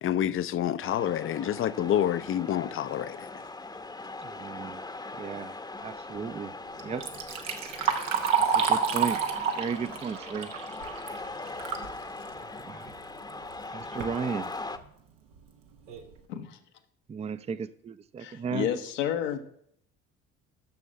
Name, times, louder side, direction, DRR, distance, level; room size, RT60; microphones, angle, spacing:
voice 1, 0.0-3.2, left 10 dB, 35° left, 0.5 m, -28 dB
sound 1, 0.8-14.8, left 3 dB, 10° left, 0.8 m, -41 dB
voice 2, 4.2-4.8 5.2-5.5 5.8-6.5 6.8-7.1 8.5-9.2 9.6-10.5 12.6-12.9 13.7-14.5 17.1-18.7, right 6 dB, 20° right, 0.5 m, -34 dB
Liquid, 6.8-11.9 12.3-12.4 13.3-13.4 13.8-14.1 14.8-14.9 15.4-15.5 15.9-16.1, right 6 dB, 85° right, 1.0 m, -29 dB
voice 3, 16.3-16.6 18.2-19.4, left 9 dB, 75° left, 1.0 m, -30 dB
7.0 x 6.2 x 7.5 m
hypercardioid pair, 55°, 36 cm